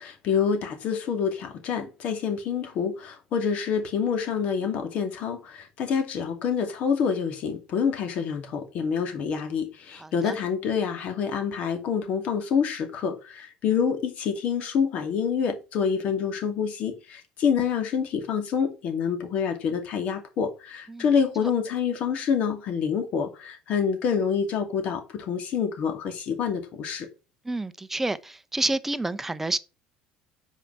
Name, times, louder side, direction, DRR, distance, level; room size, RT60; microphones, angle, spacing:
voice 1, 0.0-27.1, left 7 dB, 55° left, 2.5 m, -27 dB
voice 2, 10.0-10.4 20.9-21.0 27.4-29.6, right 2 dB, 10° right, 0.7 m, -29 dB
7.4 x 5.0 x 4.6 m
supercardioid pair, 100°, 3 cm